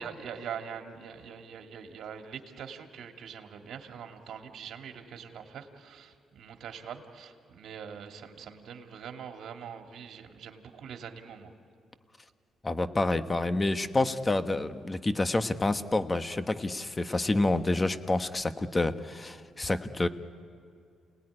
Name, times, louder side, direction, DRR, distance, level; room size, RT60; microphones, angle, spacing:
voice 1, 0.0-11.5, right 7 dB, 70° right, 4 dB, 2.4 m, -43 dB
voice 2, 12.6-20.1, left 2 dB, 20° left, 10 dB, 1.2 m, -28 dB
29.0 x 19.0 x 10.0 m, 2.3 s
cardioid pair, 90°, 0 cm